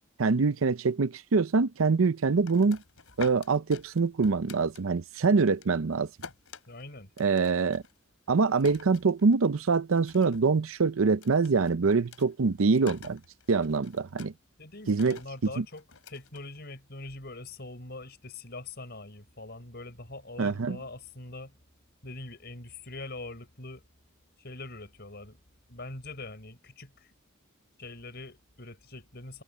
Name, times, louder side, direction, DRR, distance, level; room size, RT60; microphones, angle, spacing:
voice 1, 0.2-2.8 3.2-6.1 7.2-7.8 8.3-13.2 13.5-14.3 14.9-15.2 15.6-15.7 20.4-20.8, right 4 dB, 70° right, 0.6 m, -25 dB
sound 1, 2.2-5.2 5.5-9.6 9.9-10.5 10.8-17.1, left 4 dB, 85° left, 3.2 m, -48 dB
voice 2, 6.7-7.1 14.6-21.5 22.0-23.8 24.4-25.4 25.7-27.1 27.8-29.4, left 2 dB, 50° left, 5.5 m, -43 dB
head